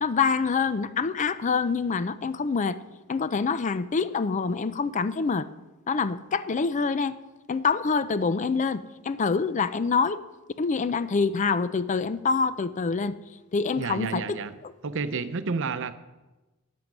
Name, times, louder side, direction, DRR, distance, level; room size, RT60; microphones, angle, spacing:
voice 1, 0.0-2.8 3.1-5.5 5.9-7.2 7.5-10.2 10.6-13.1 13.5-14.4, left 5 dB, 35° left, 14 dB, 0.4 m, -26 dB
voice 2, 13.8-14.6 14.8-15.9, right 4 dB, 60° right, 12 dB, 0.7 m, -30 dB
12.5 x 8.5 x 6.0 m, 1.1 s
head